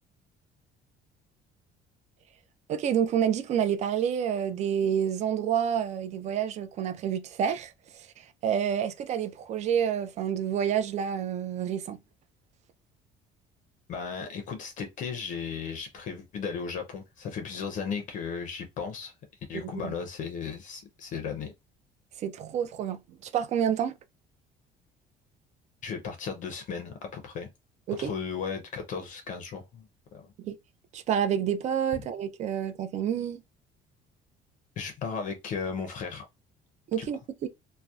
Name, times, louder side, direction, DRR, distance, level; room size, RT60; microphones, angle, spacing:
voice 1, 2.7-8.1 8.4-12.0 19.5-19.9 22.2-23.9 27.9-28.1 30.4-30.6 30.9-33.4 36.9-37.5, right 9 dB, 45° right, 0.4 m, -28 dB
voice 2, 13.9-19.1 19.5-21.5 25.8-27.5 28.0-29.9 30.1-30.3 34.8-36.3 37.0-37.1, left 6 dB, 50° left, 0.5 m, -35 dB
2.6 x 2.0 x 2.3 m
cardioid pair, 140°, 17 cm